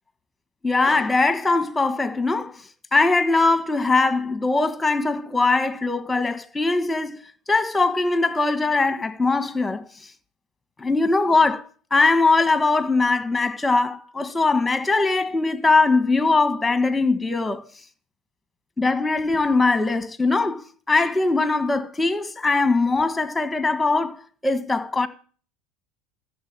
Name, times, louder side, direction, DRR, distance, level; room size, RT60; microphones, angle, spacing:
voice 1, 0.6-2.6 2.9-7.2 7.5-9.9 10.8-17.7 18.8-20.6 20.9-25.1, left 3 dB, 10° left, 1.5 m, -21 dB
14.5 x 6.8 x 8.9 m
supercardioid pair, 130°, 0 cm